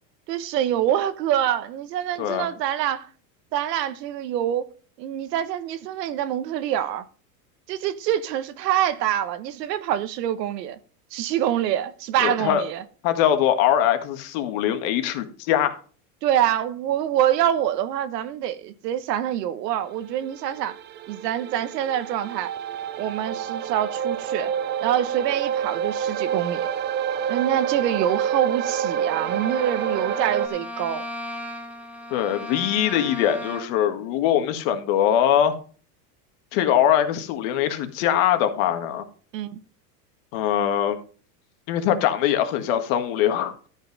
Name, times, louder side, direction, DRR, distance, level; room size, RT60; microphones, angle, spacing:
voice 1, 0.3-3.1 3.5-4.7 5.0-7.0 7.7-10.8 11.1-12.8 16.2-20.8 21.1-22.5 23.0-24.5 24.8-26.7 27.3-31.1 39.3-39.6, right 11 dB, 85° right, 1.3 m, -25 dB
voice 2, 12.2-12.6 13.0-15.8 32.1-35.5 36.5-39.0 40.3-41.0 41.7-43.5, left 10 dB, 60° left, 1.9 m, -22 dB
sound 1, 20.1-30.5, right 9 dB, 25° right, 0.4 m, -28 dB
Bowed string instrument, 28.9-33.9, left 1 dB, 5° right, 1.2 m, -37 dB
13.0 x 5.7 x 5.3 m
supercardioid pair, 140°, 47 cm